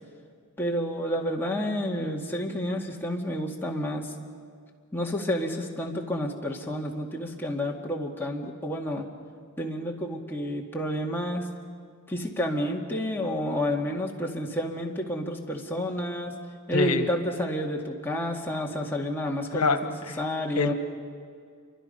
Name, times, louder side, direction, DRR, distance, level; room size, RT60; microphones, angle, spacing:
voice 1, 0.6-4.1 4.9-9.0 9.6-11.5 12.1-16.4 16.7-19.9 20.2-20.7, equal, 10° left, -2 dB, 2.1 m, -30 dB
voice 2, 16.7-17.0 19.5-19.8 20.1-20.2 20.6-20.7, left 4 dB, 90° left, 8 dB, 1.3 m, -24 dB
28.5 x 25.0 x 5.5 m, 2.1 s
head